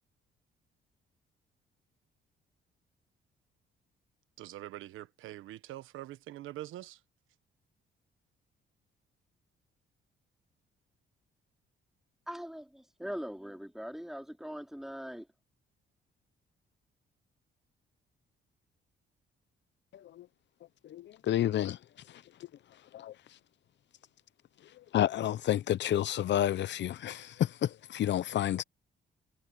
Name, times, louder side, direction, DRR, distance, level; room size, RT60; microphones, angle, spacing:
voice 1, 4.4-7.0, right 15 dB, 90° right, 1.3 m, -44 dB
voice 2, 12.3-15.3, equal, ahead, 4.0 m, -41 dB
voice 3, 19.9-20.3 20.8-21.8 22.1-22.2 22.9-23.1 24.6-28.6, left 12 dB, 65° left, 0.7 m, -30 dB
cardioid pair, 90°, 20 cm